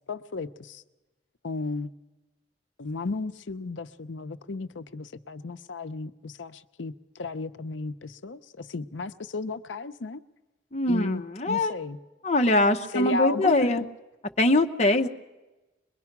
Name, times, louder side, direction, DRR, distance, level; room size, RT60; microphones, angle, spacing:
voice 1, 0.1-0.8 1.4-1.9 2.8-10.2 10.9-12.0 12.9-13.8, left 3 dB, 80° left, 0.7 m, -34 dB
voice 2, 10.7-11.7 12.2-13.8 14.4-15.1, left 2 dB, 35° left, 0.8 m, -22 dB
22.5 x 22.0 x 6.0 m
head